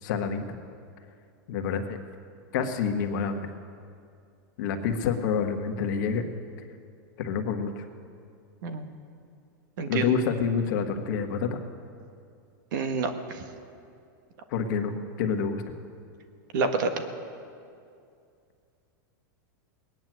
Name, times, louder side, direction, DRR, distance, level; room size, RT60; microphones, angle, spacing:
voice 1, 0.0-0.4 1.5-2.0 2.5-3.5 4.6-6.2 7.2-7.8 9.9-11.5 14.5-15.6, left 6 dB, 60° left, 5 dB, 1.5 m, -28 dB
voice 2, 9.8-10.1 12.7-13.4 16.5-16.9, right 4 dB, 65° right, 7 dB, 1.5 m, -28 dB
20.0 x 9.3 x 7.6 m, 2.4 s
supercardioid pair, 145°, 11 cm